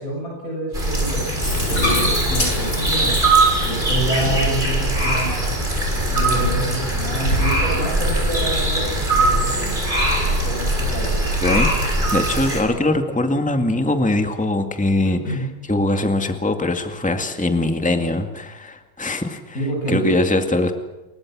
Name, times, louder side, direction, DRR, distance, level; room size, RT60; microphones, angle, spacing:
voice 1, 0.0-3.2 3.6-5.5 5.9-9.8 10.4-11.2 15.2-15.4 19.5-20.2, right 1 dB, 40° left, -2 dB, 8.5 m, -27 dB
sound 1, 0.7-12.6, right 2 dB, 20° right, 6.8 m, -21 dB
Bathtub (filling or washing), 1.4-9.8, left 2 dB, 70° left, 8.8 m, -28 dB
voice 2, 11.4-15.4 15.7-19.4 19.9-20.7, left 2 dB, 5° left, 6 dB, 2.0 m, -21 dB
29.0 x 24.0 x 6.3 m, 1.1 s
omnidirectional pair, 2.3 m